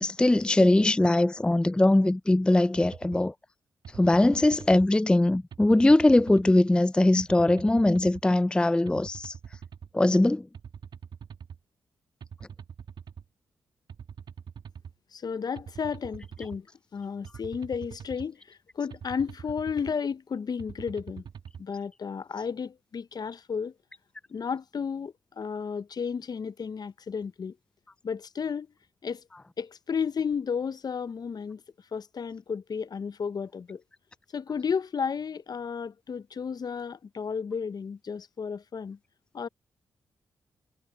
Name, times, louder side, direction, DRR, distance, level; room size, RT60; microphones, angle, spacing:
voice 1, 0.0-3.3 3.9-9.3 9.9-10.5, left 1 dB, 10° left, 0.4 m, -21 dB
sound 1, 2.7-3.2 3.8-4.9 5.5-6.5 7.2-8.2 8.9-9.9 10.5-11.6 12.2-13.2 13.9-14.9 15.6-16.6 17.2-18.3 18.9-19.9 20.6-21.6, right 7 dB, 65° right, 1.8 m, -44 dB
voice 2, 15.1-16.7 16.9-21.2 21.6-23.7 24.3-27.6 28.0-28.7 29.0-29.2 29.6-31.6 31.9-33.8 34.3-39.0 39.3-39.5, left 6 dB, 50° left, 0.7 m, -33 dB
supercardioid pair, 45°, 8 cm